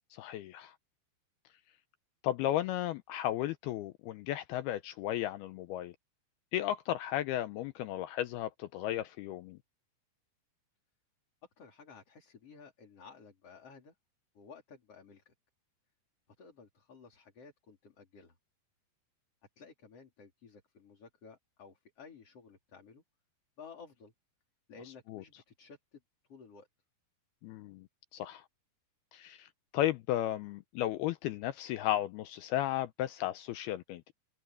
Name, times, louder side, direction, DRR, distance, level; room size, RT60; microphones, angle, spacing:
voice 1, 0.1-0.7 2.2-5.9 6.5-9.6 25.1-25.2 27.4-27.9 28.1-28.4 29.1-34.1, left 13 dB, 80° left, 2.3 m, -34 dB
voice 2, 11.6-13.9 14.3-15.3 16.4-18.4 19.6-23.0 23.6-24.1 24.7-26.0 26.3-26.7, left 5 dB, 35° left, 4.1 m, -54 dB
omnidirectional pair, 5.1 m